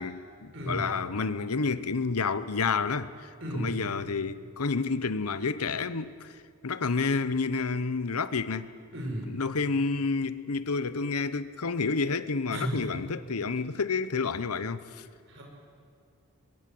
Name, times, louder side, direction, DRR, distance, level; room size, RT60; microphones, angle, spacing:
voice 1, 0.0-6.3 6.6-8.7 9.3-15.1, left 4 dB, 90° left, 0.9 m, -30 dB
voice 2, 0.5-0.9 3.4-3.9 8.9-9.3 12.5-12.9 15.3-15.4, right 1 dB, 55° right, 5.9 m, -33 dB
24.0 x 23.0 x 7.8 m
head